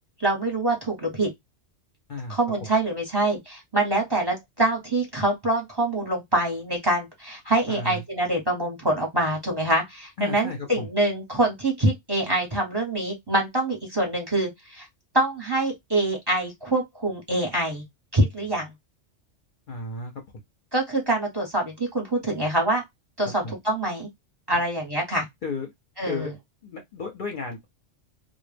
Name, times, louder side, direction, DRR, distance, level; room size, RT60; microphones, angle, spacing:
voice 1, 0.2-1.3 2.3-14.9 15.1-17.8 18.1-18.7 20.7-22.8 23.2-24.1 24.5-25.3 26.0-26.3, right 1 dB, 25° right, 0.7 m, -25 dB
voice 2, 7.7-8.0 10.2-10.9 19.7-20.1 23.4-23.5 25.4-25.7 26.1-26.3 26.6-27.6, left 3 dB, 55° left, 0.6 m, -33 dB
2.1 x 2.1 x 3.1 m
omnidirectional pair, 1.2 m